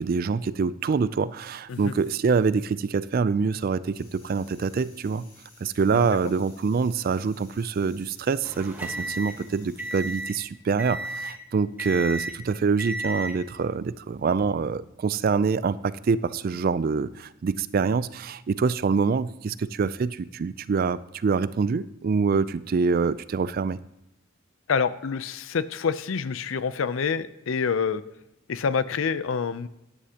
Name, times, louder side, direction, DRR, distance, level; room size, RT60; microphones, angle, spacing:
voice 1, 0.0-5.2 5.6-23.8, right 5 dB, 45° right, 17 dB, 0.3 m, -25 dB
sound 1, 1.7-2.9 3.2-10.2, left 3 dB, 45° left, 4.0 m, -55 dB
sound 2, 8.4-10.4 10.8-11.4 11.8-12.4 12.8-13.4 14.2-14.5, right 1 dB, 10° right, 1.1 m, -34 dB
voice 2, 24.7-28.0 28.5-29.7, left 6 dB, 70° left, 15 dB, 0.5 m, -27 dB
12.5 x 10.0 x 2.9 m, 0.89 s
head